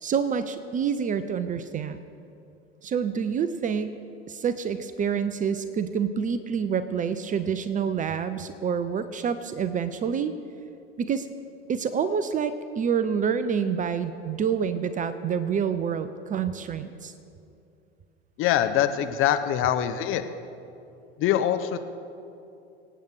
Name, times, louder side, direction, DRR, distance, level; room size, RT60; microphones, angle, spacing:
voice 1, 0.0-2.0 2.8-3.9 4.3-10.3 11.0-11.3 11.7-17.1, right 7 dB, 25° right, 12 dB, 0.6 m, -27 dB
voice 2, 18.4-20.2 21.2-21.8, left 10 dB, 40° left, 9 dB, 1.0 m, -23 dB
24.0 x 8.9 x 4.8 m, 2.6 s
figure-of-eight pair, 75°, 34 cm